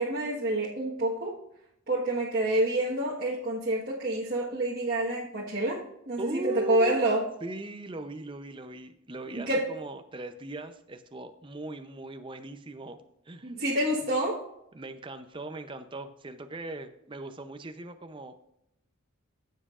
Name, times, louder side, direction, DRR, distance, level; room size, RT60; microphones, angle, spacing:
voice 1, 0.0-1.4 1.9-7.2 9.3-9.7 13.4-14.4, right 1 dB, 45° right, -6 dB, 1.4 m, -28 dB
voice 2, 6.2-7.0 7.4-13.0 13.3-13.5 14.7-18.5, right 2 dB, 25° right, 8 dB, 0.6 m, -39 dB
15.0 x 7.4 x 2.5 m, 0.81 s
head